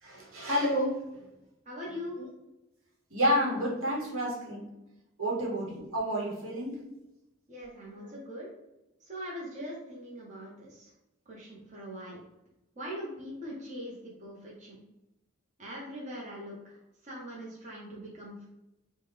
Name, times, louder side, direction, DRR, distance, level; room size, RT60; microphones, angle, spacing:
voice 1, 0.0-1.0 2.2-2.3 3.1-4.6 5.2-6.8 8.0-8.1, equal, 80° right, -3 dB, 1.0 m, -30 dB
voice 2, 1.7-2.2 5.4-5.5 7.5-8.5 9.0-10.9 11.3-12.2 12.8-13.9 14.2-14.8 15.6-16.8 17.0-18.5, equal, 35° right, -4 dB, 0.6 m, -41 dB
3.0 x 2.1 x 3.4 m, 0.94 s
head